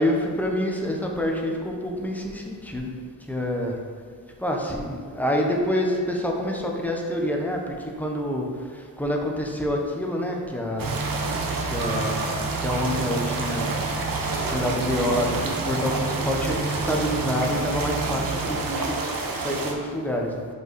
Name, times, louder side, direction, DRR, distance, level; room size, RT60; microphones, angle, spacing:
voice 1, 0.0-2.9 3.3-3.7 4.4-8.5 8.7-10.9 11.7-12.2 12.6-13.7 14.5-19.1 19.4-20.5, equal, 5° left, 0 dB, 1.0 m, -27 dB
sound 1, 10.8-19.7, right 3 dB, 70° right, 1.0 m, -27 dB
5.3 x 5.1 x 4.7 m, 2.1 s
cardioid pair, 85°, 36 cm